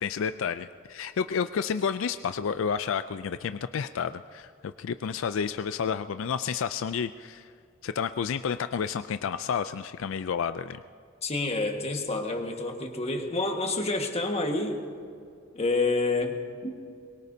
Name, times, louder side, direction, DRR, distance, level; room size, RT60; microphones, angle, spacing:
voice 1, 0.0-7.5 7.8-10.8, left 6 dB, 70° left, 11 dB, 0.4 m, -30 dB
voice 2, 11.2-14.8 15.5-16.4 16.6-16.8, left 2 dB, 30° left, 3 dB, 1.6 m, -28 dB
23.5 x 22.0 x 2.8 m, 2.4 s
head